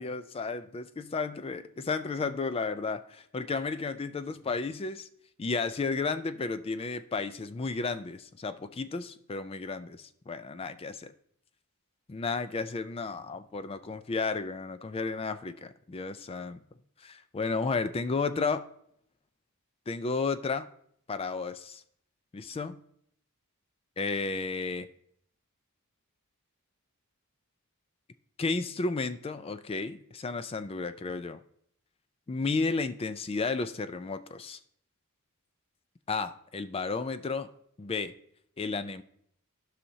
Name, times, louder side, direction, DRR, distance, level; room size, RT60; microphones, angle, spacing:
voice 1, 0.0-5.1 5.4-11.1 12.1-16.6 17.0-18.7 19.9-20.7 21.1-21.8 22.3-22.8 24.0-24.9 28.4-31.4 32.3-34.6 36.1-37.5 37.8-38.1 38.6-39.0, left 4 dB, 25° left, 12 dB, 0.4 m, -33 dB
15.0 x 5.6 x 2.8 m, 0.67 s
head